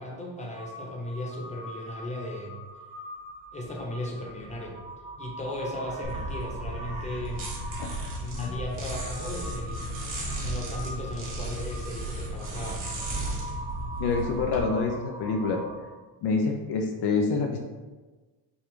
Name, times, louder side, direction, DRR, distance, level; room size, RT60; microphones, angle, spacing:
voice 1, 0.0-2.6 3.5-4.8 5.2-7.5 8.2-9.9 10.4-12.9, left 1 dB, 15° left, -1 dB, 1.0 m, -36 dB
Crow, 0.5-16.0, right 1 dB, 70° right, 1.3 m, -42 dB
sound 1, 6.0-14.6, right 1 dB, 45° right, 1.5 m, -34 dB
voice 2, 14.0-15.6 16.2-17.6, left 4 dB, 65° left, 2 dB, 0.6 m, -27 dB
6.0 x 2.4 x 3.7 m, 1.3 s
cardioid pair, 120°, 44 cm